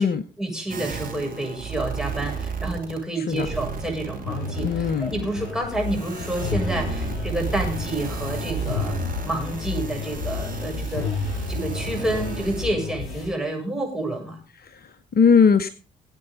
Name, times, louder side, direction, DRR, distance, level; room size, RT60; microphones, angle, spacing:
voice 1, 0.4-8.9 9.2-11.1 11.5-14.4, right 1 dB, 5° right, 0 dB, 7.4 m, -29 dB
sound 1, 0.7-3.0 3.3-12.6, right 5 dB, 40° right, 2.7 m, -33 dB
sound 2, 4.2-13.3, left 5 dB, 65° left, 7.7 m, -31 dB
voice 2, 4.6-5.1 14.6-15.7, left 6 dB, 45° left, 13 dB, 0.9 m, -20 dB
20.5 x 8.7 x 4.0 m, 0.36 s
hypercardioid pair, 45°, 21 cm